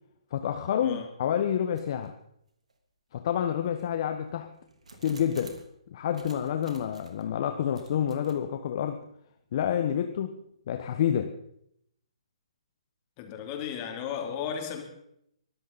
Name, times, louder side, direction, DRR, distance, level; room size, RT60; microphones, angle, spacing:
voice 1, 0.3-2.1 3.1-4.5 5.0-5.6 5.9-9.0 9.5-10.3 10.7-11.3, left 9 dB, 45° left, 7 dB, 1.2 m, -28 dB
sound 1, 1.7-2.1 2.7-2.8 3.5-5.7 6.1-7.2 7.7-8.4, right 2 dB, 90° right, 3.4 m, -51 dB
voice 2, 13.2-14.8, left 8 dB, 30° left, 4 dB, 3.1 m, -35 dB
23.5 x 13.5 x 4.2 m, 0.75 s
hypercardioid pair, 145°, 3 cm